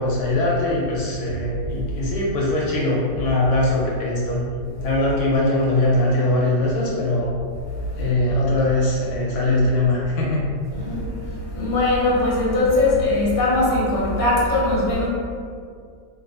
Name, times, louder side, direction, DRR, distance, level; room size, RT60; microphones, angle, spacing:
voice 1, 0.0-4.4 4.8-7.3 7.9-10.4, left 2 dB, 75° left, -4 dB, 1.0 m, -21 dB
voice 2, 11.5-15.1, left 2 dB, 40° left, -6 dB, 0.8 m, -20 dB
2.8 x 2.2 x 4.0 m, 2.2 s
omnidirectional pair, 1.8 m